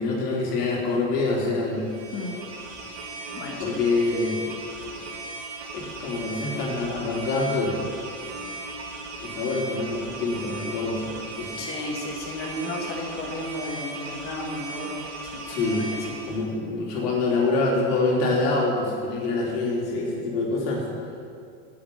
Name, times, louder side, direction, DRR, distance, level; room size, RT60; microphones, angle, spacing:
voice 1, 0.0-1.9 3.6-4.4 5.7-7.9 9.2-11.0 11.4-11.7 15.5-15.9 16.2-20.8, left 3 dB, 85° left, -2 dB, 3.1 m, -25 dB
sound 1, 1.7-16.5, right 2 dB, 85° right, 2.2 m, -37 dB
voice 2, 2.1-2.4 3.3-3.8 11.6-15.0 15.3-15.9, left 2 dB, 30° left, -1 dB, 1.5 m, -34 dB
8.9 x 7.8 x 7.0 m, 2.4 s
supercardioid pair, 150°, 45 cm